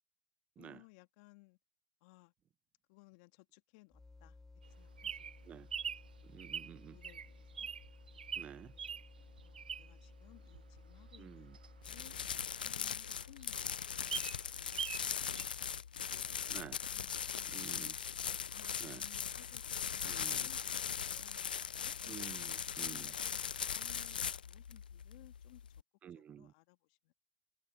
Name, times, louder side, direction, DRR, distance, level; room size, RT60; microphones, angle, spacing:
voice 1, 0.6-1.6 2.0-2.3 2.9-4.4 4.6-5.8 6.7-7.7 8.1-12.1 12.6-17.9 18.5-22.0 22.8-25.7 26.1-27.1, left 28 dB, 55° left, 2.3 m, -63 dB
sound 1, 3.9-12.6, left 3 dB, 10° left, 4.2 m, -57 dB
Bird vocalization bird call bird song, 4.6-10.1 10.5-12.7 13.1-13.2 13.4-13.5 13.8-15.1 15.4-15.5, right 7 dB, 90° right, 0.3 m, -43 dB
voice 2, 6.2-7.0 8.4-8.7 11.2-11.6 16.5-16.8 17.5-17.9 18.8-19.0 20.0-20.5 22.1-23.1 26.0-26.5, right 9 dB, 30° right, 1.1 m, -50 dB
sound 2, 11.8-25.8, left 8 dB, 85° left, 0.4 m, -40 dB
hypercardioid pair, 100°, 5 cm